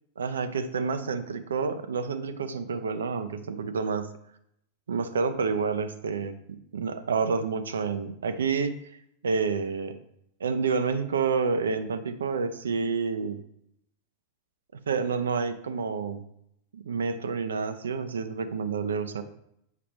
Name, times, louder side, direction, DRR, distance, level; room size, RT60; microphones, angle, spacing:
voice 1, 0.2-4.1 4.9-6.3 6.7-8.8 9.2-9.9 10.4-13.4 14.9-16.2 16.7-19.2, right 5 dB, 70° right, 10 dB, 0.5 m, -29 dB
7.6 x 5.9 x 3.0 m, 0.74 s
figure-of-eight pair, 90°, 0 cm